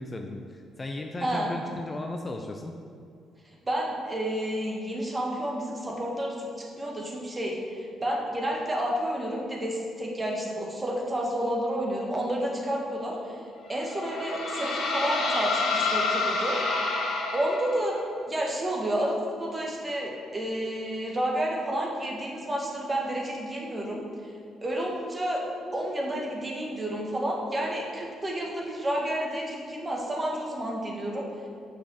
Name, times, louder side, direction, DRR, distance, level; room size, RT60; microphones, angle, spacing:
voice 1, 0.0-2.7, left 2 dB, 25° left, 3 dB, 0.6 m, -36 dB
voice 2, 1.2-1.5 3.7-13.4 13.7-16.6 17.3-18.0 18.3-24.0 24.6-25.4 25.7-31.3, right 1 dB, 25° right, -2 dB, 1.8 m, -30 dB
sound 1, 13.7-18.0, left 3 dB, 80° left, 1.4 m, -28 dB
6.4 x 5.9 x 6.5 m, 2.3 s
cardioid pair, 90°, 0 cm